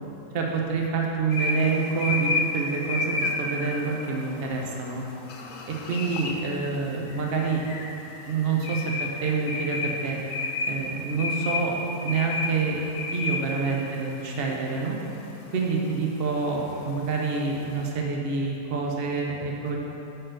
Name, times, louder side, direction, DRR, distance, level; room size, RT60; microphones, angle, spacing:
voice 1, 0.3-5.0 5.7-7.7 8.2-10.2 10.7-11.8 12.0-12.8 13.1-15.0 15.5-19.8, right 4 dB, 50° right, -1 dB, 1.1 m, -27 dB
sound 1, 1.3-17.9, left 2 dB, 80° left, 1.1 m, -32 dB
7.9 x 4.6 x 6.5 m, 2.9 s
omnidirectional pair, 1.4 m